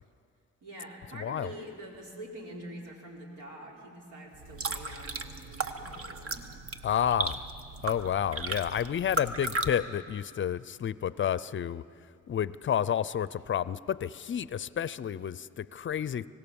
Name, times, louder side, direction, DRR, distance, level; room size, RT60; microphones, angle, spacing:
voice 1, 0.6-6.5, right 1 dB, 85° right, -1 dB, 4.2 m, -45 dB
voice 2, 1.1-1.5 6.8-7.4 7.8-11.8 12.3-16.3, left 9 dB, 40° left, 18 dB, 0.5 m, -30 dB
sound 1, 4.3-9.7, right 3 dB, 50° right, 1.4 m, -36 dB
25.0 x 18.0 x 7.0 m, 2.4 s
cardioid pair, 90°, 30 cm